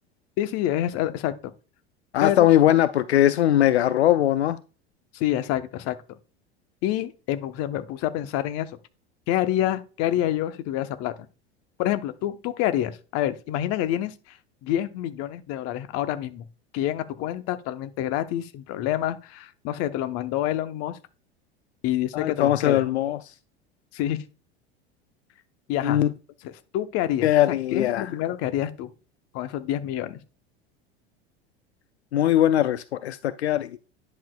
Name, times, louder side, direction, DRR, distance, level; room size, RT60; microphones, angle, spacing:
voice 1, 0.4-1.5 2.2-2.5 5.1-6.2 6.8-8.8 9.3-11.1 11.8-16.4 16.7-21.0 21.8-22.8 23.9-24.2 25.7-26.0 26.4-28.9 29.3-30.2, left 12 dB, 50° left, 0.9 m, -27 dB
voice 2, 2.1-4.6 22.1-23.2 25.8-26.1 27.2-28.1 32.1-33.8, left 12 dB, 80° left, 0.5 m, -20 dB
10.0 x 6.4 x 2.3 m
hypercardioid pair, 80°, 32 cm